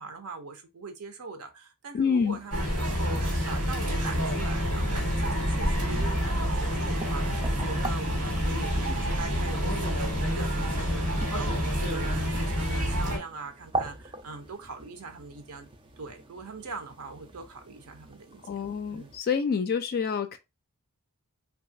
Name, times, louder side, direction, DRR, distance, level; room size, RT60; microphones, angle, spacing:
voice 1, 0.0-15.7 16.0-18.6 18.9-19.1, right 4 dB, 75° right, 0.6 m, -42 dB
voice 2, 1.9-2.4 18.5-20.4, left 6 dB, 45° left, 0.3 m, -27 dB
sound 1, 2.1-19.2, right 2 dB, 20° right, 0.4 m, -43 dB
sound 2, 2.5-13.2, equal, 90° right, 1.3 m, -28 dB
3.1 x 2.3 x 2.6 m
head